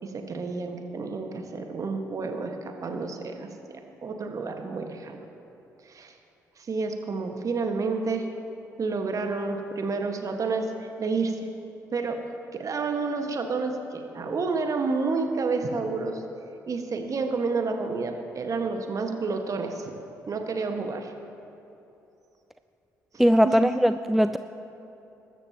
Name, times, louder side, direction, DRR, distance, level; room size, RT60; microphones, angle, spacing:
voice 1, 0.0-3.5 4.0-5.2 5.8-6.1 6.6-8.3 8.8-10.7 11.0-11.4 11.9-12.2 12.5-16.2 16.7-19.9 20.3-21.1 23.4-23.7, right 4 dB, 40° right, 4 dB, 1.6 m, -29 dB
voice 2, 23.2-24.4, equal, 5° right, 11 dB, 0.4 m, -20 dB
22.5 x 13.0 x 3.0 m, 2.9 s
figure-of-eight pair, 45°, 9 cm